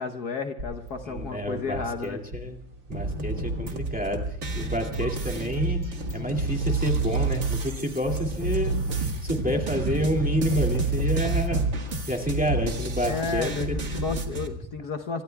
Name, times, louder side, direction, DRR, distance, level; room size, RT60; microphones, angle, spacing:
voice 1, 0.0-2.2 13.0-15.2, left 4 dB, 60° left, 5 dB, 1.4 m, -32 dB
sound 1, 0.6-2.1 2.3-2.4 2.9-4.2 4.6-5.0 5.2-7.1 7.5-9.0 9.3-9.4 9.8-11.2 11.6-13.4 13.9-14.0, equal, 60° right, 5.1 m, -40 dB
sound 2, 0.9-1.0 1.2-1.3 1.9-4.2 4.7-12.7 13.0-13.1, right 3 dB, 90° right, 3.4 m, -28 dB
voice 2, 1.0-2.6 2.9-5.8 6.1-13.8, equal, 5° right, 2 dB, 2.2 m, -29 dB
sound 3, 2.9-14.5, right 2 dB, 40° right, 1.8 m, -33 dB
26.0 x 24.0 x 2.3 m, 0.74 s
omnidirectional pair, 2.0 m